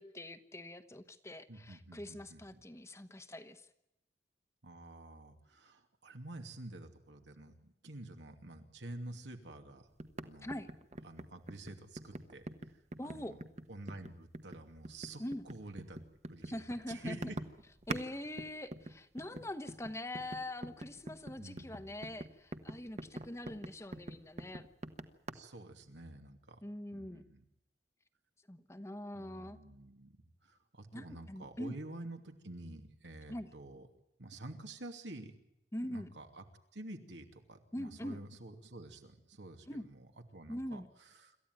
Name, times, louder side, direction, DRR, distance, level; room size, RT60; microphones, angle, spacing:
voice 1, 0.0-3.7 10.4-10.7 13.0-13.3 15.2-15.4 16.4-17.2 17.9-24.6 26.6-27.2 28.5-29.6 30.9-31.8 33.3-33.5 35.7-36.1 37.7-38.2 39.7-39.9 40.5-40.9, left 1 dB, 15° left, 9 dB, 1.1 m, -43 dB
voice 2, 1.5-2.6 4.6-9.9 10.2-10.6 11.0-13.4 13.7-16.0 16.3-17.4 21.4-22.1 25.3-26.6 26.9-27.4 29.1-30.2 30.4-33.8 34.2-35.3 35.8-36.4 36.7-41.4, right 2 dB, 85° right, 5 dB, 2.8 m, -49 dB
sound 1, 10.0-18.1 18.4-25.3, right 1 dB, 40° right, 1.3 m, -44 dB
27.0 x 14.5 x 9.4 m, 0.84 s
head